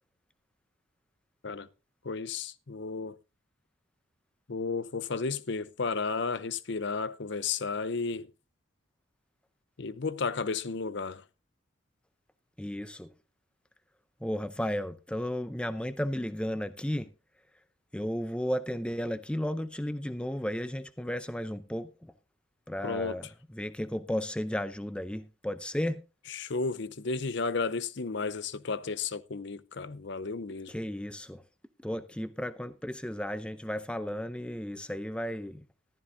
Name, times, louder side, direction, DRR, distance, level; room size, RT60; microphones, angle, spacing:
voice 1, 2.0-3.2 4.5-8.3 9.8-11.2 22.8-23.2 26.3-30.7, left 4 dB, 60° left, 0.7 m, -33 dB
voice 2, 12.6-13.1 14.2-17.1 17.9-22.1 22.7-26.0 30.7-31.4 31.8-35.7, equal, 5° left, 0.5 m, -34 dB
14.5 x 12.5 x 2.7 m
head